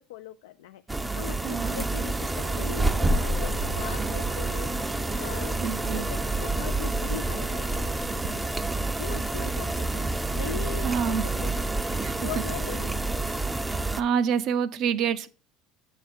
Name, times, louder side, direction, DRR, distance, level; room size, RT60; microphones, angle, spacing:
voice 1, 0.0-5.7 5.9-11.9 12.2-13.3, left 11 dB, 80° left, 0.3 m, -41 dB
sound 1, 0.9-14.0, right 2 dB, 10° right, 0.5 m, -28 dB
voice 2, 1.4-1.8 5.6-6.0 10.8-11.2 12.0-12.2 13.7-15.3, right 7 dB, 55° right, 0.5 m, -27 dB
Aircraft, 2.4-9.4, right 4 dB, 75° right, 1.8 m, -42 dB
7.5 x 5.0 x 4.3 m
hypercardioid pair, 80°, 0 cm